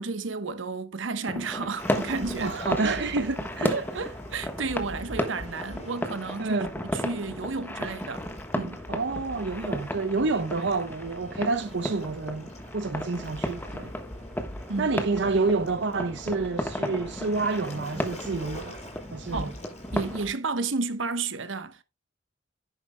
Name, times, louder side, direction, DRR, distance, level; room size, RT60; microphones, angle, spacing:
voice 1, 0.0-2.6 2.9-3.0 3.7-6.6 6.9-8.3 8.5-8.8 10.6-10.7 14.7-14.9 19.3-19.6 19.9-21.8, right 4 dB, 85° right, 1.0 m, -32 dB
sound 1, 1.3-20.2, left 1 dB, 10° left, 1.3 m, -34 dB
Waves surf, 1.8-20.3, left 1 dB, 35° left, 6.0 m, -43 dB
voice 2, 2.4-3.8 6.4-6.7 8.9-13.9 14.8-18.8 19.1-19.5, right 3 dB, 65° right, 0.7 m, -28 dB
10.5 x 9.8 x 2.2 m
head